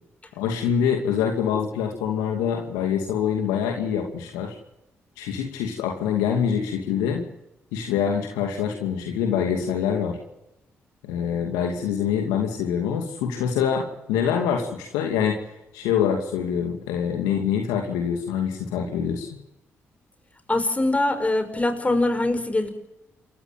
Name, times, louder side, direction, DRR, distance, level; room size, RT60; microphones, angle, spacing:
voice 1, 0.4-4.6 5.2-7.2 7.7-10.2 11.0-15.4 15.7-19.3, left 8 dB, 85° left, 3 dB, 2.6 m, -25 dB
voice 2, 20.5-22.7, left 2 dB, 20° left, 9 dB, 5.5 m, -23 dB
28.0 x 14.5 x 7.7 m, 0.88 s
hypercardioid pair, 45°, 6 cm